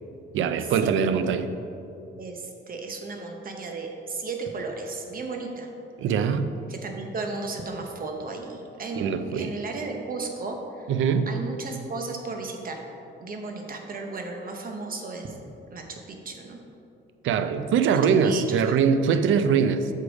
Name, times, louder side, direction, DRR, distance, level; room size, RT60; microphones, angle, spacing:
voice 1, 0.3-1.5 6.0-6.5 9.0-9.5 10.9-11.3 17.2-19.9, right 6 dB, 75° right, 10 dB, 0.5 m, -22 dB
voice 2, 2.2-5.7 6.7-9.1 9.3-10.9 11.3-12.8 13.2-15.3 15.7-16.6 17.9-18.8, right 3 dB, 45° right, 3 dB, 0.8 m, -35 dB
6.6 x 4.8 x 5.1 m, 2.7 s
cardioid pair, 90°, 20 cm